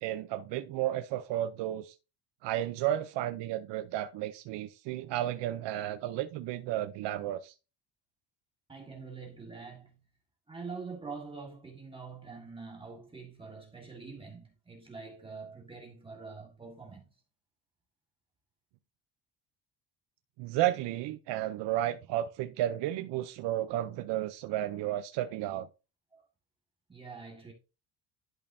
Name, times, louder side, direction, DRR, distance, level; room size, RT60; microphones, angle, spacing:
voice 1, 0.0-1.9 2.4-7.5 20.4-25.7, right 13 dB, 70° right, 0.7 m, -33 dB
voice 2, 8.7-10.0 10.5-17.0 26.1-26.3 26.9-27.5, right 4 dB, 10° right, 1.6 m, -45 dB
11.5 x 5.3 x 2.7 m
cardioid pair, 160°, 44 cm